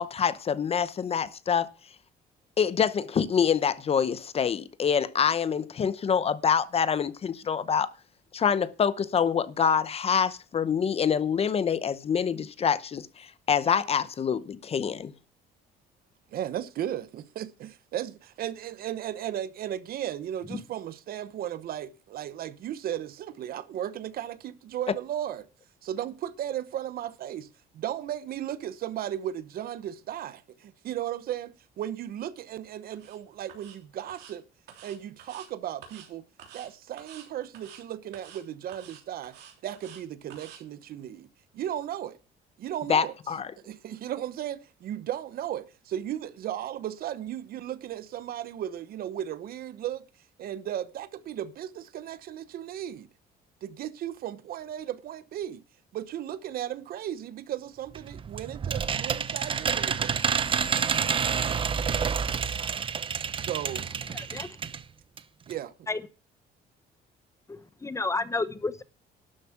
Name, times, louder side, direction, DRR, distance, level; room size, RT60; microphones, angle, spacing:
voice 1, 0.0-1.7 2.6-7.9 8.3-15.1 42.9-43.5, left 7 dB, 35° left, 0.8 m, -26 dB
voice 2, 16.3-25.5 25.8-34.4 34.8-36.2 36.5-39.4 39.6-41.3 41.5-42.2 42.6-43.1 43.6-50.0 50.4-53.1 53.6-55.6 55.9-60.4 63.4-63.9 65.5-65.9, right 11 dB, 60° right, 0.9 m, -35 dB
sound 1, 32.9-33.2 33.5-33.8 34.1-34.3 34.7-35.5 35.8-36.1 36.4-36.7 37.0-37.3 37.5-37.8 38.1-38.4 38.7-40.0 40.3-40.6, right 9 dB, 80° right, 3.3 m, -49 dB
sound 2, 57.9-64.8 65.2-65.3 65.5-65.6, right 6 dB, 30° right, 0.7 m, -29 dB
voice 3, 64.1-64.5 65.9-66.0 67.5-68.8, left 3 dB, 15° left, 1.0 m, -31 dB
12.0 x 7.2 x 5.9 m
cardioid pair, 110°, 17 cm